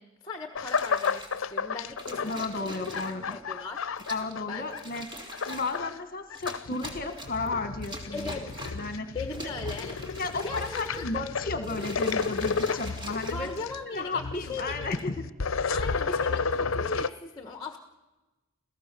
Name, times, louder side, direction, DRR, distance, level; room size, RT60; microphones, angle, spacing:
voice 1, 0.0-2.6 3.3-3.9 4.5-4.7 8.1-8.5 9.1-11.1 12.7-12.8 13.3-14.9 15.7-17.8, left 3 dB, 20° left, 6 dB, 1.4 m, -38 dB
sound 1, 0.5-5.0 5.3-6.0 6.3-17.1, left 5 dB, 70° left, 0.7 m, -32 dB
sound 2, 0.6-1.4 2.0-3.3 4.0-4.4 4.7-5.8 6.3-7.5 7.8-8.9 9.3-11.2 11.6-14.0 14.7-15.1, equal, 25° right, 3.2 m, -43 dB
voice 2, 2.2-3.4 4.1-8.3 8.7-9.2 9.4-9.5 10.2-13.5 13.9-15.2, left 3 dB, 45° left, 8 dB, 1.3 m, -33 dB
28.5 x 16.5 x 6.8 m, 1.1 s
head